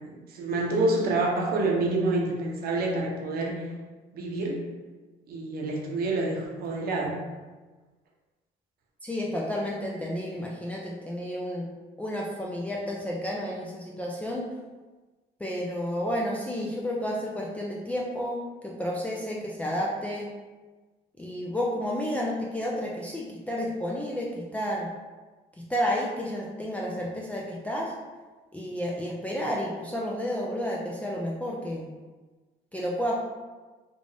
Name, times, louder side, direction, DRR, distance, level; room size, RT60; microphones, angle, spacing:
voice 1, 0.0-3.6 4.1-4.7 5.3-7.2, right 2 dB, 65° right, -1 dB, 0.8 m, -27 dB
voice 2, 9.0-11.7 12.0-14.5 15.4-20.3 21.2-24.9 25.6-27.9 28.5-32.0 32.7-33.1, equal, 10° left, -4 dB, 0.4 m, -31 dB
3.4 x 2.5 x 3.3 m, 1.3 s
cardioid pair, 110°, 17 cm